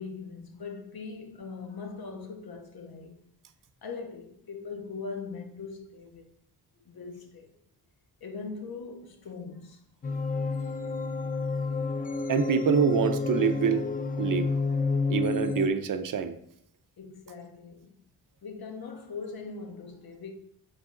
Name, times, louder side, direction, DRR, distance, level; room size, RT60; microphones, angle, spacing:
voice 1, 0.0-3.2 3.8-6.3 6.8-7.5 8.2-9.8 11.4-11.5 17.0-17.9 18.4-20.3, left 4 dB, 65° left, 1.2 m, -41 dB
sound 1, 10.0-15.7, left 4 dB, 25° left, 0.3 m, -29 dB
voice 2, 12.3-13.8 14.2-14.5 15.1-16.3, right 7 dB, 55° right, 0.6 m, -25 dB
7.4 x 4.0 x 3.7 m
cardioid pair, 90°, 39 cm